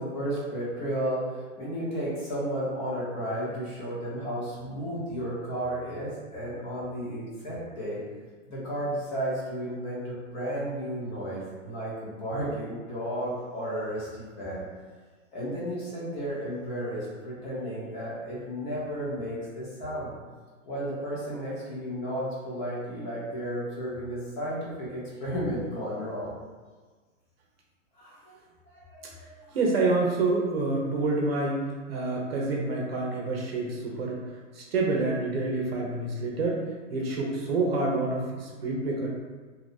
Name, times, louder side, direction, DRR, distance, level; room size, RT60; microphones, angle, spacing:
voice 1, 0.0-8.0 8.5-14.6 15.3-20.1 20.6-26.3 27.9-28.4 28.7-29.6, equal, 35° left, -7 dB, 1.2 m, -33 dB
voice 2, 29.5-31.6 31.9-34.2 34.5-36.6 36.9-39.1, right 3 dB, 50° right, -2 dB, 0.7 m, -27 dB
2.8 x 2.4 x 4.0 m, 1.4 s
hypercardioid pair, 170°, 40 cm